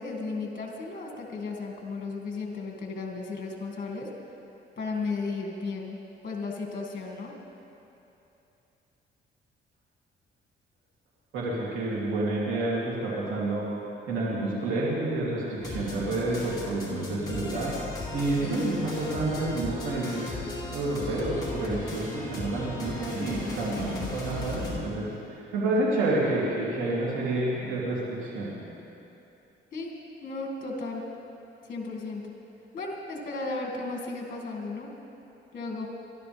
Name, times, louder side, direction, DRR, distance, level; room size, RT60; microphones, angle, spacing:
voice 1, 0.0-4.1 4.8-6.0 6.2-7.3 29.7-29.9 30.2-31.0 31.7-32.3 32.7-34.9 35.5-35.9, left 3 dB, 45° left, 0 dB, 2.3 m, -34 dB
voice 2, 11.3-13.7 14.1-17.7 18.1-20.4 20.7-28.6, right 2 dB, 90° right, -6 dB, 3.1 m, -29 dB
sound 1, 15.6-24.8, left 2 dB, 20° left, 2.9 m, -37 dB
23.0 x 12.5 x 3.5 m, 2.9 s
cardioid pair, 90°, 20 cm